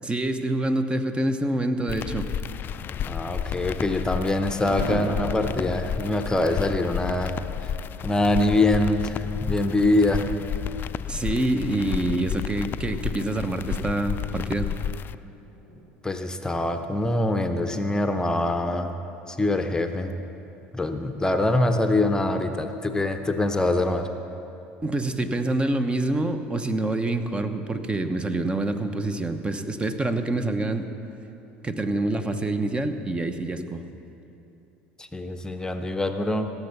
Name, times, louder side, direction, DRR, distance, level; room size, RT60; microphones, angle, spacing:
voice 1, 0.0-2.3 11.1-14.7 24.8-30.9 31.6-33.9, right 2 dB, 20° right, 8 dB, 0.9 m, -26 dB
sound 1, 1.9-15.1, left 8 dB, 40° left, 0.3 m, -32 dB
voice 2, 3.1-7.4 7.6-7.7 8.0-10.3 16.0-18.9 19.3-20.1 20.7-24.1 35.0-36.5, left 2 dB, 15° left, 6 dB, 0.8 m, -24 dB
Thunder, 4.6-20.8 21.1-21.2 21.4-21.6 21.8-22.2, right 2 dB, 75° right, 1.8 m, -44 dB
16.0 x 7.1 x 6.9 m, 2.8 s
hypercardioid pair, 75°, 5 cm